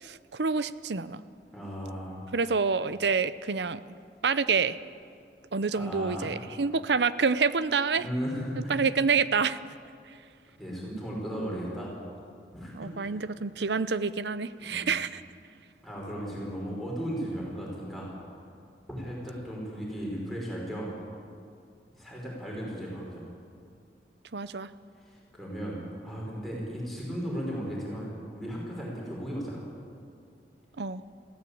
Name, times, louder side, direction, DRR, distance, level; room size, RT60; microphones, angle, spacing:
voice 1, 0.0-1.2 2.3-3.8 4.2-4.8 5.5-8.0 8.7-9.6 12.7-15.2 24.3-24.7 30.8-31.0, right 5 dB, 80° right, 15 dB, 0.7 m, -27 dB
voice 2, 1.5-2.2 5.7-6.3 8.0-8.8 10.6-11.9 12.5-13.2 14.6-14.9 15.8-18.1 18.9-20.9 21.9-23.2 25.0-29.7, equal, ahead, -4 dB, 5.5 m, -36 dB
21.5 x 15.5 x 8.6 m, 2.3 s
head